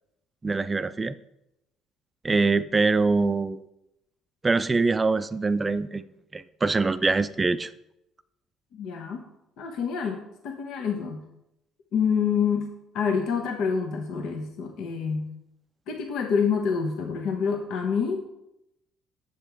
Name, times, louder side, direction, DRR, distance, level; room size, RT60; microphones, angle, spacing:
voice 1, 0.4-1.1 2.2-3.6 4.4-6.0 6.3-7.7, right 3 dB, 20° right, 13 dB, 0.4 m, -24 dB
voice 2, 8.7-9.2 9.6-11.2 11.9-15.3 15.9-18.3, left 6 dB, 75° left, 3 dB, 1.0 m, -27 dB
7.6 x 7.2 x 4.6 m, 0.85 s
cardioid pair, 105°, 0 cm